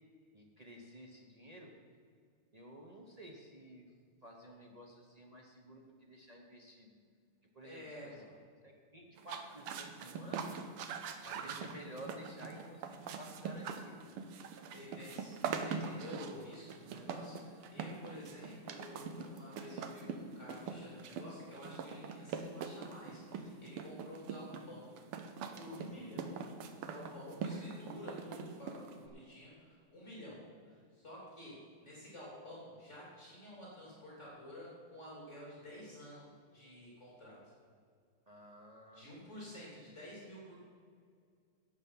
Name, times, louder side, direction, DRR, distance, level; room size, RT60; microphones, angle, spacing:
voice 1, 0.3-1.7 2.5-3.9 4.2-7.0 7.5-8.1 8.6-10.6 11.2-14.1 25.7-26.2 38.3-39.1, equal, 55° right, 0 dB, 0.4 m, -53 dB
voice 2, 7.6-8.3 14.7-24.9 25.2-26.5 26.7-37.4 38.9-40.5, left 1 dB, 30° left, -5 dB, 3.2 m, -51 dB
sound 1, 9.2-29.1, right 6 dB, 85° right, 1.8 m, -43 dB
12.0 x 8.2 x 5.6 m, 2.2 s
omnidirectional pair, 2.4 m